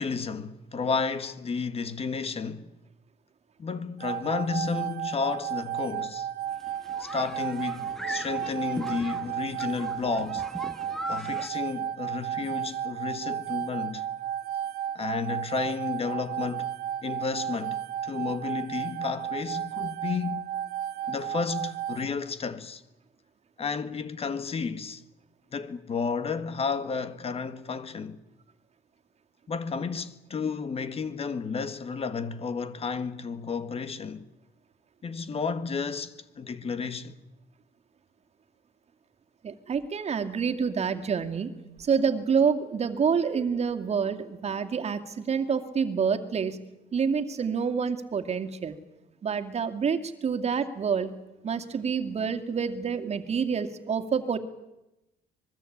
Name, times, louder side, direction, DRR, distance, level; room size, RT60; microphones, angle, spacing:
voice 1, 0.0-2.7 3.6-6.3 7.0-10.4 11.1-14.0 14.9-16.7 17.0-20.5 21.1-22.8 23.6-25.0 25.5-28.2 29.5-34.2 35.0-37.1, left 5 dB, 35° left, 1.7 m, -32 dB
sound 1, 4.0-22.0, right 10 dB, 65° right, 1.6 m, -33 dB
sound 2, 6.5-11.5, left 1 dB, ahead, 1.4 m, -40 dB
voice 2, 39.4-41.5 41.8-46.6 46.9-48.8 49.2-51.2 51.4-54.4, right 6 dB, 40° right, 2.3 m, -27 dB
25.0 x 21.5 x 8.7 m
cardioid pair, 110°, 17 cm